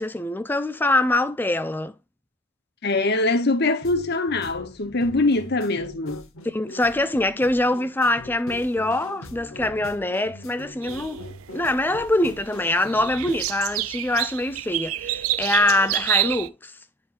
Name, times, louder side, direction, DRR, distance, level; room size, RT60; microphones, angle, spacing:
voice 1, 0.0-1.9 6.5-11.2 11.5-16.7, left 1 dB, 10° left, 0.4 m, -24 dB
voice 2, 2.8-6.3, left 2 dB, 50° left, 1.0 m, -23 dB
sound 1, 3.8-13.4, left 1 dB, 75° left, 1.2 m, -42 dB
sound 2, 10.8-16.5, right 15 dB, 80° right, 0.4 m, -29 dB
11.0 x 4.4 x 2.5 m
head